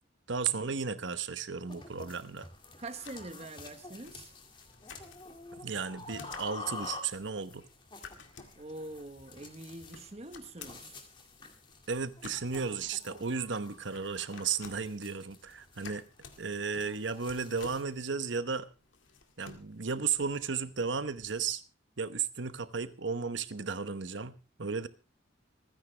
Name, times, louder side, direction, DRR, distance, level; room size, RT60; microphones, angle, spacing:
voice 1, 0.3-2.5 5.6-7.7 11.9-16.0 16.4-18.7 19.4-21.6 22.0-24.9, right 5 dB, 75° right, 1.0 m, -34 dB
sound 1, 1.7-17.8, left 3 dB, 25° left, 2.2 m, -49 dB
sound 2, 1.8-21.5, left 4 dB, 85° left, 2.1 m, -54 dB
voice 2, 2.8-4.3 8.6-11.0, right 2 dB, 35° right, 1.3 m, -44 dB
26.5 x 10.0 x 3.3 m
head